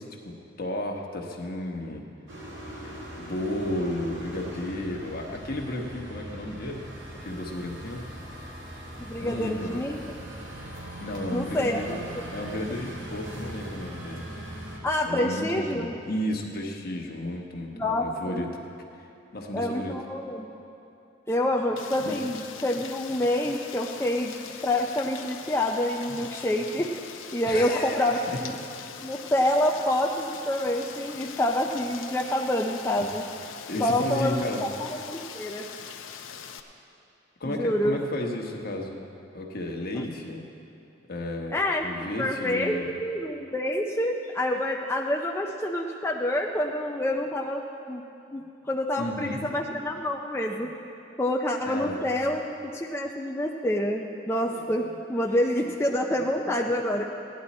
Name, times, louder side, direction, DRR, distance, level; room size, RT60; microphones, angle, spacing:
voice 1, 0.0-2.0 2.8-2.9 3.2-6.9 7.2-8.0 9.2-9.9 11.0-12.0 12.3-14.3 15.0-18.5 19.3-19.9 22.0-22.1 27.4-28.4 33.0-33.1 33.7-34.7 37.4-39.0 39.3-40.4 41.1-42.9 49.0-49.4 51.7-52.0, left 1 dB, 50° left, 1 dB, 1.2 m, -33 dB
sound 1, 2.3-14.8, right 1 dB, 70° right, 2.5 m, -40 dB
voice 2, 9.0-10.1 11.3-11.8 14.8-15.9 17.7-18.4 19.5-20.5 21.3-24.4 24.6-26.9 27.3-28.5 29.0-33.2 33.8-35.7 37.4-38.0 40.0-40.1 41.5-41.9 42.2-48.0 48.3-50.7 51.2-57.0, left 1 dB, 15° left, 0 dB, 0.5 m, -27 dB
Rain, 21.8-36.6, left 7 dB, 85° left, 0.7 m, -42 dB
16.0 x 10.5 x 4.2 m, 2.7 s
head